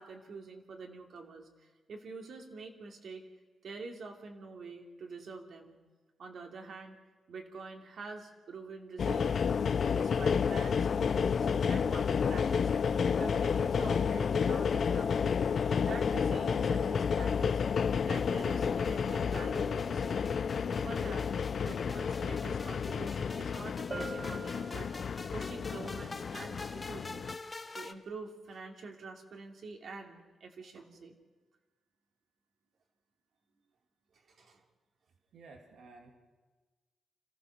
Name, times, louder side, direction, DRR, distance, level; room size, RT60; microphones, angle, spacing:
voice 1, 0.0-3.2 3.6-5.8 6.2-7.0 7.3-9.4 9.8-12.7 13.0-15.4 15.8-17.6 18.1-20.4 20.8-21.3 21.6-24.9 25.3-27.3 27.7-31.1 34.3-34.6, right 4 dB, 65° right, 2 dB, 2.8 m, -46 dB
sound 1, 9.0-27.3, left 6 dB, 60° left, 0.6 m, -31 dB
sound 2, 18.1-27.9, left 3 dB, 30° left, 0.9 m, -48 dB
Bell, 23.9-25.5, right 3 dB, 35° right, 1.3 m, -44 dB
voice 2, 35.3-36.1, right 3 dB, 85° right, 2 dB, 2.7 m, -53 dB
26.0 x 15.0 x 6.6 m, 1.3 s
cardioid pair, 80°, 0 cm